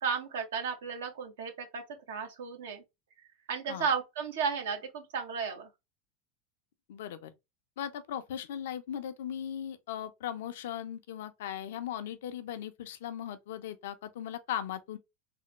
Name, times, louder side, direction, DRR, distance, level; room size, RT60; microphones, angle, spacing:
voice 1, 0.0-2.8 3.5-5.7, right 6 dB, 85° right, 0.9 m, -34 dB
voice 2, 6.9-7.3 7.8-15.0, left 10 dB, 80° left, 0.5 m, -38 dB
3.4 x 2.1 x 2.9 m
supercardioid pair, 115°, 0 cm